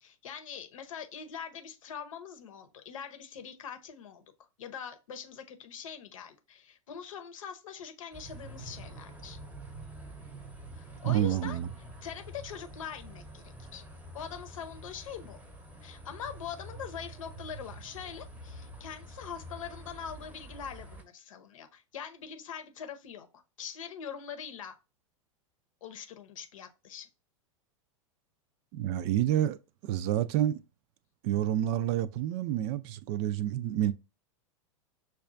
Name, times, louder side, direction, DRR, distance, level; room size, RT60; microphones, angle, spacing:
voice 1, 0.0-4.2 4.6-9.4 10.7-11.6 12.0-13.8 14.1-15.4 15.8-24.8 25.8-27.1, left 7 dB, 75° left, 0.8 m, -43 dB
sound 1, 8.1-21.0, right 1 dB, 10° right, 0.7 m, -47 dB
voice 2, 11.0-11.7 28.7-30.6 31.2-33.9, right 12 dB, 50° right, 0.4 m, -29 dB
6.1 x 2.3 x 2.4 m
hypercardioid pair, 100°, 17 cm